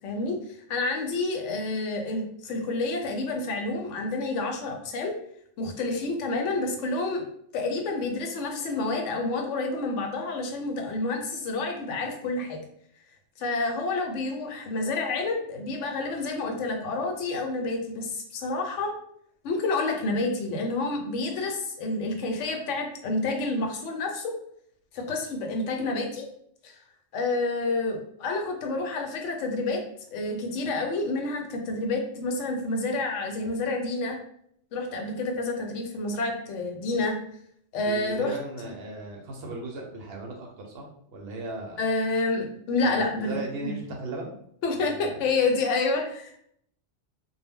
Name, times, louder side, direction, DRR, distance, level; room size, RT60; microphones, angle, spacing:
voice 1, 0.0-0.4 0.7-5.2 5.6-7.2 7.5-12.6 13.4-18.9 19.4-24.3 24.9-26.3 26.6-26.7 27.1-29.8 30.1-34.2 34.7-37.1 37.7-38.3 41.8-43.3 43.6-43.7 44.6-46.4, left 3 dB, 80° left, 3 dB, 0.9 m, -29 dB
voice 2, 37.8-40.9 41.1-41.8 42.8-44.3 44.8-45.1, right 2 dB, 65° right, 1 dB, 0.8 m, -37 dB
2.1 x 2.1 x 3.5 m, 0.69 s
omnidirectional pair, 1.2 m